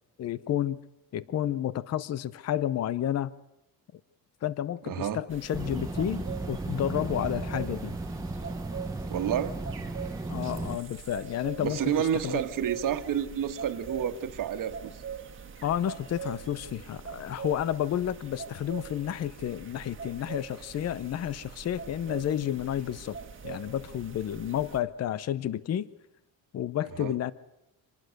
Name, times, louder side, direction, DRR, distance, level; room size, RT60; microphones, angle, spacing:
voice 1, 0.2-0.8 1.1-3.3 4.4-7.9 10.3-12.4 15.6-25.9 26.5-27.3, left 11 dB, 40° left, 18 dB, 0.7 m, -31 dB
voice 2, 4.8-5.2 9.1-9.5 11.6-15.0 27.0-27.1, right 9 dB, 55° right, 8 dB, 1.6 m, -29 dB
sound 1, 5.3-24.8, right 6 dB, 30° right, 1.7 m, -43 dB
sound 2, 5.5-10.8, right 2 dB, 10° right, 0.9 m, -35 dB
26.0 x 19.5 x 6.6 m, 0.90 s
cardioid pair, 160°, 38 cm